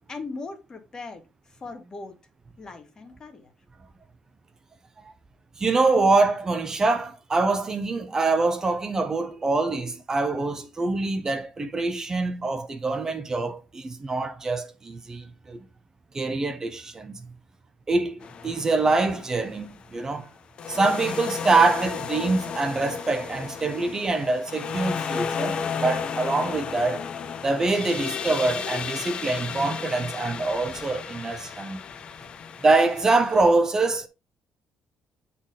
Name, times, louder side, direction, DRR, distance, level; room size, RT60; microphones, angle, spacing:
voice 1, 0.1-2.2 2.6-3.5, left 3 dB, 30° left, 1.4 m, -39 dB
voice 2, 5.6-15.7 16.1-17.2 17.9-18.2 18.4-20.3 20.7-27.0 27.4-31.8 32.6-34.1, right 3 dB, 25° right, 0.6 m, -24 dB
sound 1, 18.2-19.7 20.6-33.5, left 6 dB, 45° left, 0.6 m, -33 dB
8.0 x 4.2 x 3.7 m
cardioid pair, 125°, 2 cm